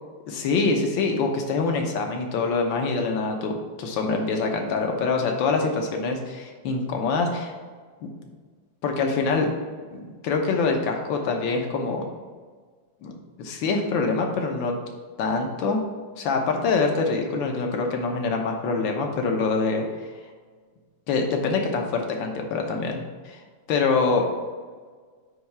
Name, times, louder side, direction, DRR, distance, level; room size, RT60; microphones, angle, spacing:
voice 1, 0.3-7.5 8.0-8.1 8.8-9.5 9.9-12.0 13.0-14.7 15.2-15.8 16.2-20.1 21.1-23.4 23.7-24.3, left 4 dB, 75° left, 2 dB, 1.7 m, -25 dB
9.3 x 3.2 x 5.9 m, 1.5 s
omnidirectional pair, 2.1 m